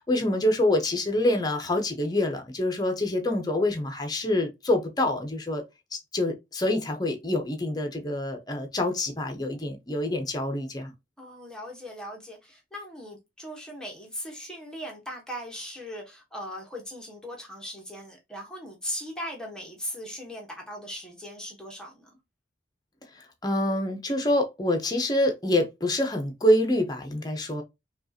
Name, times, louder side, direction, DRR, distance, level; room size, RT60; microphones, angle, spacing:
voice 1, 0.0-5.6 5.9-10.9 23.2-27.6, left 1 dB, 20° left, 0.8 m, -26 dB
voice 2, 11.2-22.2, equal, 5° left, 1.1 m, -39 dB
5.2 x 2.4 x 2.7 m
head